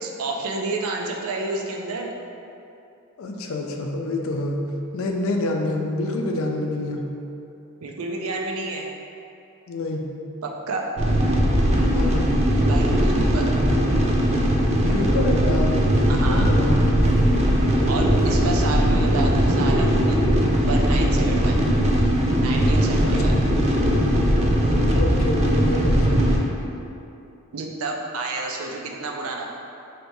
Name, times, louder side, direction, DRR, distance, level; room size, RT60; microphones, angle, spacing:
voice 1, 0.0-2.1 7.8-8.9 10.4-10.9 12.6-13.7 16.1-16.5 17.9-20.2 20.6-21.6 22.4-23.4 27.5-29.5, right 3 dB, 85° right, 1 dB, 0.5 m, -30 dB
voice 2, 3.2-4.6 4.9-7.1 9.7-10.1 11.9-12.3 14.9-15.8 16.1-16.9 23.0-23.2 24.9-26.2, left 2 dB, 70° left, 2 dB, 0.4 m, -27 dB
sound 1, 11.0-26.4, equal, 30° right, 0.5 m, -19 dB
sound 2, 14.5-19.8, right 1 dB, 70° right, 1.1 m, -39 dB
3.3 x 2.7 x 4.5 m, 2.7 s
head